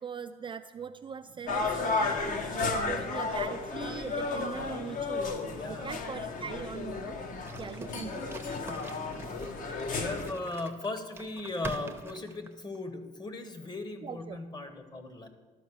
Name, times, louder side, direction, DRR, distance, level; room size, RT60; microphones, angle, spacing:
voice 1, 0.0-7.2 7.6-8.4 9.2-9.3 14.0-14.4, right 7 dB, 30° right, 8 dB, 0.3 m, -41 dB
sound 1, 1.5-10.3, left 3 dB, 50° left, 1.0 m, -33 dB
voice 2, 5.5-5.9 9.4-15.3, left 2 dB, 25° left, 8 dB, 1.0 m, -38 dB
sound 2, 7.4-12.8, right 2 dB, 15° right, 0.7 m, -45 dB
12.5 x 5.1 x 6.2 m, 1.4 s
cardioid pair, 110°, 17 cm